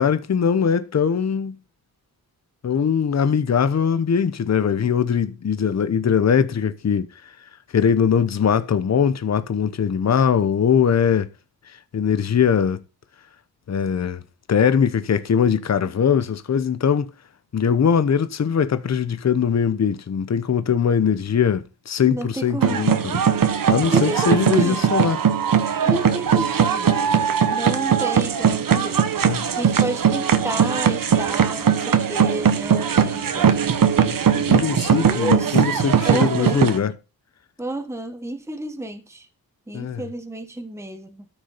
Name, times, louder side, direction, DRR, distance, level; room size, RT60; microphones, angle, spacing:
voice 1, 0.0-1.6 2.6-7.1 7.7-11.3 11.9-12.8 13.7-14.2 14.5-17.1 17.5-23.2 23.7-25.2 29.2-29.5 34.0-36.9 39.7-40.0, left 7 dB, 45° left, 1.0 m, -21 dB
voice 2, 22.0-22.8 23.9-24.9 25.8-26.9 27.5-29.0 29.5-33.9 35.0-35.7 36.0-36.6 37.6-39.3 39.7-41.2, right 1 dB, 5° right, 1.2 m, -30 dB
sound 1, 22.6-36.8, right 8 dB, 60° right, 1.3 m, -19 dB
13.5 x 6.7 x 4.2 m
wide cardioid pair, 135°, 37 cm